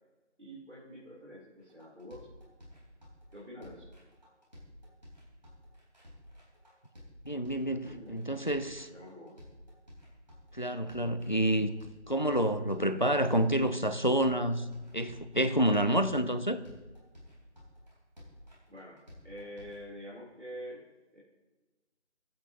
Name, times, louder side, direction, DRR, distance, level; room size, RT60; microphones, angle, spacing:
voice 1, 0.4-2.3 3.3-3.9 7.7-9.4 18.7-19.0 19.2-20.8 21.1-21.2, equal, 70° right, -6 dB, 3.2 m, -47 dB
sound 1, 1.6-19.9, left 1 dB, 35° right, 3.8 m, -53 dB
voice 2, 7.3-8.9 10.5-11.7 12.1-14.7 14.9-16.6, right 1 dB, 40° left, 11 dB, 0.5 m, -28 dB
20.0 x 8.5 x 2.8 m, 1.2 s
figure-of-eight pair, 175°, 36 cm